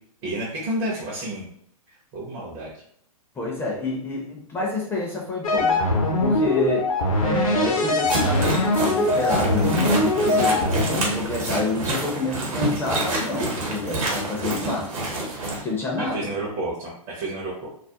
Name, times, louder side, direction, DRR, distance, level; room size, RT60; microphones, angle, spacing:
voice 1, 0.2-1.5 1.9-2.7 16.0-17.7, right 1 dB, 35° right, -5 dB, 0.6 m, -30 dB
voice 2, 3.3-5.8 6.2-6.9 7.2-14.9 15.6-16.3, left 2 dB, 10° left, -2 dB, 0.4 m, -28 dB
sound 1, 5.4-11.2, left 2 dB, 65° left, 0.6 m, -22 dB
sound 2, 8.0-15.6, right 2 dB, 65° right, 1.0 m, -27 dB
2.3 x 2.0 x 2.7 m, 0.68 s
figure-of-eight pair, 115°, 19 cm